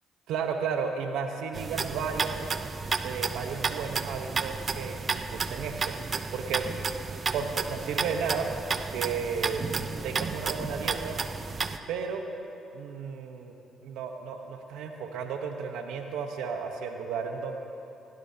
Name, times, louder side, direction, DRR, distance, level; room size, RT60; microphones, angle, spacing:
voice 1, 0.3-2.5 3.0-6.0 6.3-6.7 7.3-8.5 8.9-9.6 10.0-11.2 11.9-12.2 12.7-13.6 13.8-17.6, right 6 dB, 80° right, 4 dB, 1.0 m, -33 dB
sound 1, 1.5-11.8, right 4 dB, 45° right, 0.7 m, -32 dB
20.5 x 16.0 x 2.8 m, 2.8 s
supercardioid pair, 65°, 0 cm